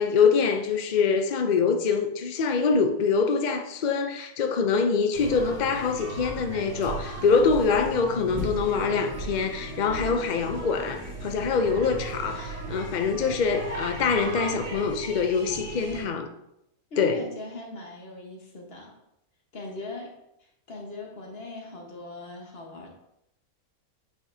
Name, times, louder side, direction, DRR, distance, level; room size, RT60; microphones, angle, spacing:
voice 1, 0.0-16.3 17.0-17.2, left 5 dB, 65° left, 0.4 m, -24 dB
sound 1, 5.1-16.0, right 2 dB, 55° right, 2.1 m, -36 dB
voice 2, 16.9-18.9 19.5-20.1 20.4-22.9, left 2 dB, 45° left, 1.5 m, -40 dB
8.3 x 5.9 x 2.8 m
omnidirectional pair, 1.5 m